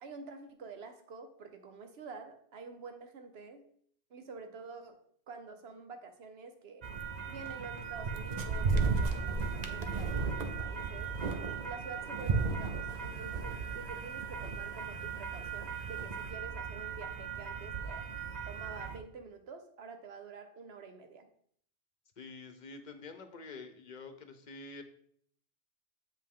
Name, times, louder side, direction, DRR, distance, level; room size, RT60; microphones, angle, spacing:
voice 1, 0.0-3.6 4.1-5.0 5.3-6.8 7.3-11.1 11.6-18.1 18.4-21.3, right 4 dB, 70° right, 7 dB, 1.1 m, -48 dB
sound 1, 6.8-19.0, right 5 dB, 45° right, 0.8 m, -35 dB
voice 2, 22.2-24.8, left 3 dB, 45° left, 8 dB, 0.9 m, -47 dB
7.7 x 5.3 x 3.6 m, 0.63 s
omnidirectional pair, 1.1 m